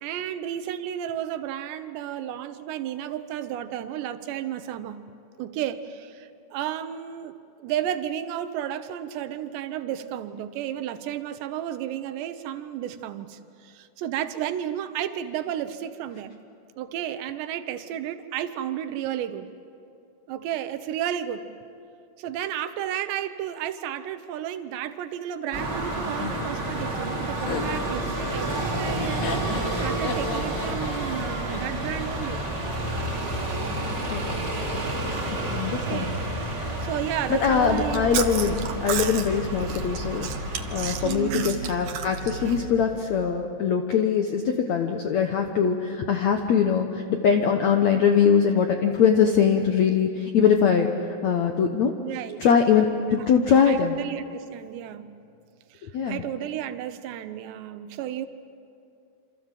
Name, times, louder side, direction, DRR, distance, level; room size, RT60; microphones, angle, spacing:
voice 1, 0.0-5.0 5.4-7.3 7.6-16.3 16.8-19.5 20.3-21.4 22.2-29.3 29.8-32.4 35.7-36.2 36.8-38.1 40.9-41.7 52.0-52.4 53.7-55.1 55.7-58.3, right 11 dB, 90° right, 10 dB, 3.2 m, -32 dB
sound 1, 25.5-41.2, right 1 dB, 25° right, 4.0 m, -30 dB
Laughter, 26.2-32.3, left 4 dB, 60° left, 3.7 m, -35 dB
voice 2, 34.1-34.5 35.3-36.1 37.3-50.9 51.2-52.0 52.4-54.0 55.8-56.2, left 7 dB, 75° left, 4 dB, 1.6 m, -22 dB
Chewing mastication, 37.6-43.0, right 5 dB, 65° right, 1.9 m, -33 dB
28.0 x 26.5 x 7.6 m, 2.5 s
omnidirectional pair, 4.9 m